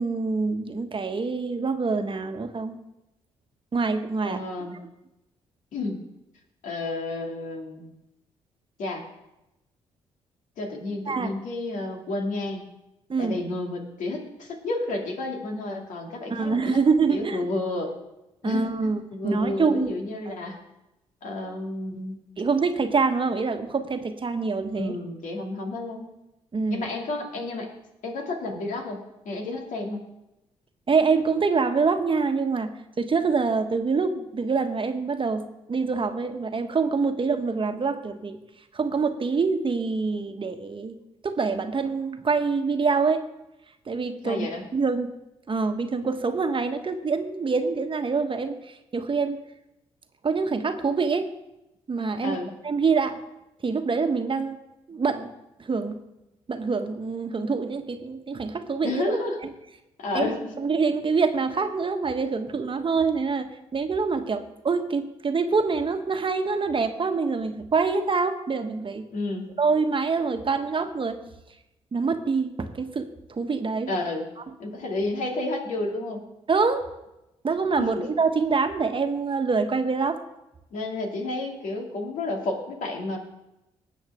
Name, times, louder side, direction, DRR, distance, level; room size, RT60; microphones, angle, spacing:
voice 1, 0.0-2.8 3.7-4.4 11.1-11.3 13.1-13.4 16.3-17.4 18.4-19.9 20.3-20.4 22.4-25.0 26.5-26.9 30.9-38.4 38.7-40.9 41.2-43.3 43.9-44.5 44.7-45.1 45.5-49.4 50.2-51.3 51.9-52.4 52.6-53.2 53.6-54.6 54.9-55.3 55.6-56.0 56.5-59.2 60.1-60.2 60.6-69.1 69.6-71.2 71.9-73.9 76.5-76.8 77.4-80.2, right 4 dB, 40° right, 7 dB, 1.3 m, -25 dB
voice 2, 4.2-4.7 5.7-6.0 6.6-7.8 8.8-9.0 10.6-12.6 13.2-16.8 17.1-17.9 18.4-18.7 19.1-20.6 21.2-22.2 24.7-26.1 26.7-27.7 28.0-30.1 44.2-44.6 52.2-52.5 58.8-59.4 60.0-60.5 69.1-69.5 73.9-74.2 74.6-76.2 77.8-78.0 80.7-83.2, left 2 dB, 65° left, 1 dB, 2.5 m, -31 dB
19.0 x 7.7 x 3.6 m, 0.92 s
hypercardioid pair, 45°, 14 cm